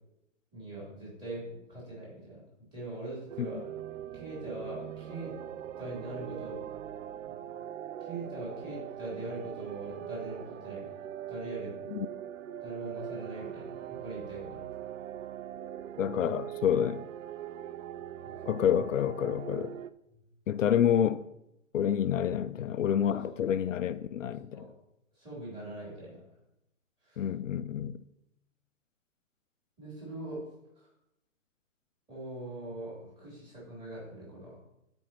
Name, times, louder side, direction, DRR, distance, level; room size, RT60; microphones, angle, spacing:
voice 1, 0.5-2.4 2.7-3.6 4.1-5.3 5.8-6.6 7.3-7.4 8.0-10.9 11.3-11.8 12.6-14.6 18.2-18.4 20.1-20.2 23.1-23.2 24.5-24.7 25.2-26.2 27.0-27.2 29.8-30.4 30.8-30.9 32.1-34.6, right 2 dB, 10° right, 3.5 m, -42 dB
sound 1, 3.3-19.9, right 11 dB, 80° right, 0.6 m, -41 dB
voice 2, 16.0-17.1 18.5-19.7 20.5-21.2 21.7-24.7 27.2-28.0, left 9 dB, 75° left, 0.5 m, -28 dB
14.5 x 5.3 x 3.0 m
hypercardioid pair, 160°, 38 cm